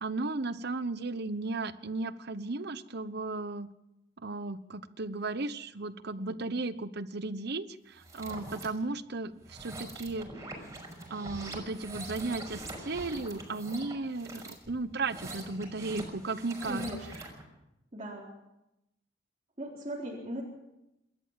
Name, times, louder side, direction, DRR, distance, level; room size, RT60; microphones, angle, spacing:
voice 1, 0.0-3.7 4.2-10.3 11.1-16.8, right 3 dB, 60° right, 14 dB, 1.0 m, -35 dB
sound 1, 7.9-8.7 9.4-17.4, right 2 dB, 15° right, 5.8 m, -44 dB
voice 2, 16.7-17.1 17.9-18.3 19.6-20.4, equal, 35° right, -4 dB, 4.2 m, -38 dB
28.0 x 13.5 x 7.6 m, 0.90 s
head